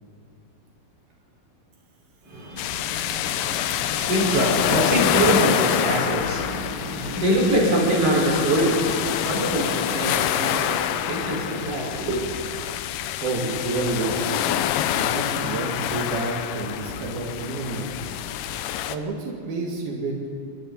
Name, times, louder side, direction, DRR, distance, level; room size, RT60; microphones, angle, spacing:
voice 1, 2.2-12.3, right 1 dB, 40° right, -3 dB, 5.9 m, -24 dB
sound 1, 2.6-19.0, left 11 dB, 75° left, 2.2 m, -26 dB
voice 2, 12.9-14.4 14.9-17.9 18.9-20.3, right 3 dB, 90° right, -2 dB, 4.2 m, -29 dB
29.5 x 23.0 x 4.2 m, 2.3 s
omnidirectional pair, 4.2 m